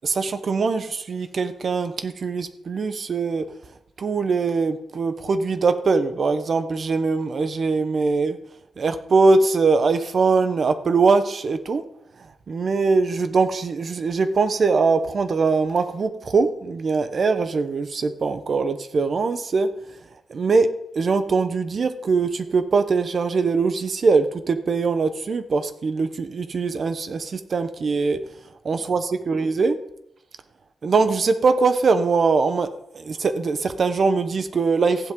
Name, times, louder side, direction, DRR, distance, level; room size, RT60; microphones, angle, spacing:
voice 1, 0.0-3.5 4.0-8.4 8.8-11.8 12.2-19.7 20.3-28.2 28.6-29.8 30.8-32.7 32.9-35.1, right 4 dB, 45° right, 9 dB, 1.0 m, -22 dB
15.0 x 11.0 x 3.8 m, 0.78 s
wide cardioid pair, 155°, 0 cm